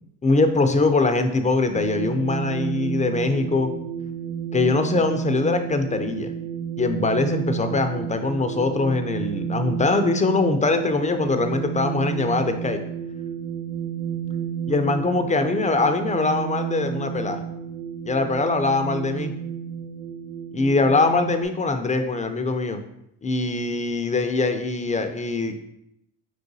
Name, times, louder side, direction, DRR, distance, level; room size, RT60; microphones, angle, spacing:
voice 1, 0.2-3.7 4.5-6.3 6.8-12.8 14.7-17.4 18.1-19.3 20.5-22.8 23.2-25.5, left 3 dB, 20° left, 7 dB, 0.4 m, -22 dB
sound 1, 1.7-21.5, right 8 dB, 40° right, 1.0 m, -31 dB
4.4 x 3.9 x 2.7 m, 0.78 s
supercardioid pair, 75°, 42 cm